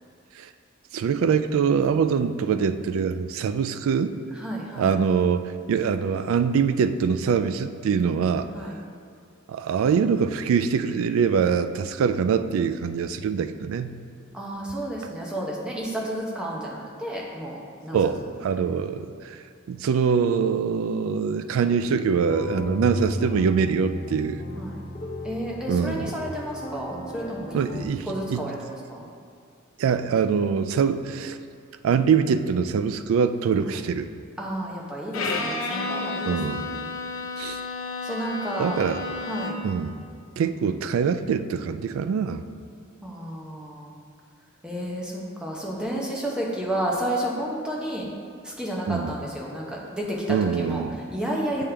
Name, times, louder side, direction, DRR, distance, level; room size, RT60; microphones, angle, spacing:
voice 1, 0.9-4.2 4.8-8.5 9.5-14.0 17.9-19.1 19.7-24.4 25.7-26.1 27.5-28.5 29.8-31.4 31.8-34.1 36.3-36.7 37.4-37.6 38.6-39.0 39.6-40.0 40.4-42.4 48.9-49.1 50.3-51.0, right 6 dB, 80° right, 12 dB, 0.3 m, -24 dB
voice 2, 4.4-4.9 8.5-8.8 14.3-17.6 17.8-18.0 18.6-18.7 24.6-24.8 25.2-27.6 28.0-29.1 34.4-36.4 36.6-36.9 38.0-38.8 39.2-39.6 43.0-44.0 44.6-48.1 48.4-50.8 51.1-51.6, right 1 dB, 5° right, -3 dB, 0.8 m, -31 dB
sound 1, 22.2-27.8, left 1 dB, 25° left, 0.5 m, -34 dB
Bowed string instrument, 35.1-39.8, left 3 dB, 85° left, 0.6 m, -31 dB
8.5 x 3.6 x 3.3 m, 2.3 s
head